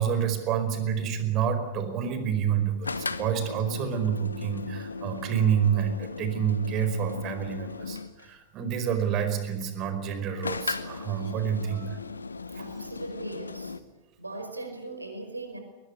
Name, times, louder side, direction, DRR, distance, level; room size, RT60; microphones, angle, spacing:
voice 1, 0.0-12.0 12.5-12.7, right 8 dB, 35° right, 9 dB, 4.9 m, -28 dB
sound 1, 2.8-8.3 10.4-13.8, left 4 dB, 75° left, 1.1 m, -37 dB
voice 2, 12.5-13.8 14.2-15.6, right 2 dB, 85° right, 6 dB, 5.0 m, -39 dB
22.0 x 20.5 x 10.0 m, 1.1 s
figure-of-eight pair, 90°, 0 cm